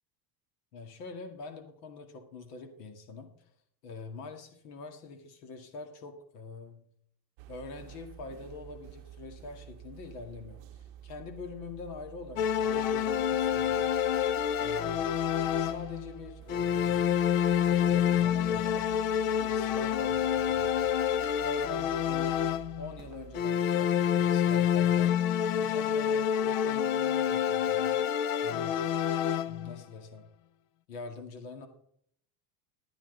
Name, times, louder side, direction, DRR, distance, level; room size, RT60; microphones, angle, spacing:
voice 1, 0.7-3.3 3.8-6.9 7.5-14.0 14.6-15.1 15.6-17.1 17.7-18.9 19.4-20.8 21.4-22.4 22.8-25.2 25.6-27.9 28.4-28.8 29.5-30.3 30.9-31.7, left 3 dB, 80° left, 6 dB, 2.1 m, -44 dB
sound 1, 7.4-23.4, right 10 dB, 60° right, 0.8 m, -49 dB
sound 2, 12.4-16.1 16.5-22.9 23.3-29.8, left 9 dB, 60° left, 0.5 m, -28 dB
13.0 x 9.1 x 3.9 m, 0.65 s
cardioid pair, 175°, 46 cm